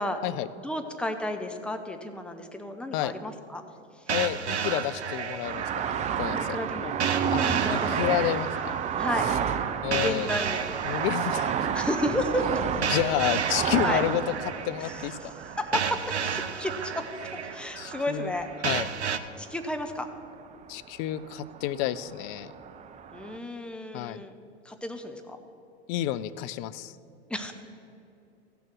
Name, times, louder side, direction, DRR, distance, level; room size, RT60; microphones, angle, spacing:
voice 1, 0.6-3.6 4.0-4.1 6.3-7.0 7.6-8.0 9.0-9.3 9.9-10.6 11.7-12.6 13.8-14.0 14.8-15.3 15.6-17.0 17.4-18.5 19.4-20.1 23.1-24.4 24.6-25.4 27.3-27.5, left 1 dB, 5° left, 5 dB, 0.8 m, -32 dB
voice 2, 4.1-6.6 7.3-8.7 9.8-10.3 10.8-11.6 12.9-14.2 14.6-15.3 17.8-18.4 18.6-18.9 20.7-22.5 23.9-24.2 25.9-26.9, left 13 dB, 35° left, 15 dB, 0.4 m, -30 dB
sound 1, 4.1-19.2, right 7 dB, 80° right, 0.7 m, -33 dB
sound 2, 5.4-18.7 19.0-19.7 20.0-20.8 21.1-23.4, right 8 dB, 20° right, 0.5 m, -31 dB
15.0 x 6.9 x 6.1 m, 2.8 s
figure-of-eight pair, 95°, 33 cm